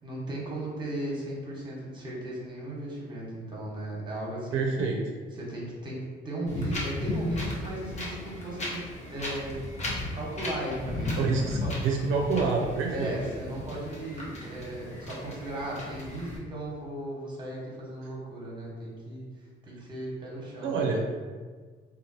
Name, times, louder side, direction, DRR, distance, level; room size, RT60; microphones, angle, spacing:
voice 1, 0.0-5.0 5.3-9.6 10.1-11.8 12.9-20.9, right 1 dB, 25° right, -3 dB, 1.0 m, -36 dB
voice 2, 4.5-5.0 11.2-13.1 20.6-21.0, right 4 dB, 85° right, 0 dB, 0.4 m, -27 dB
Wind, 6.5-16.4, left 1 dB, 35° left, 0.8 m, -35 dB
3.1 x 2.4 x 2.7 m, 1.5 s
cardioid pair, 90°, 20 cm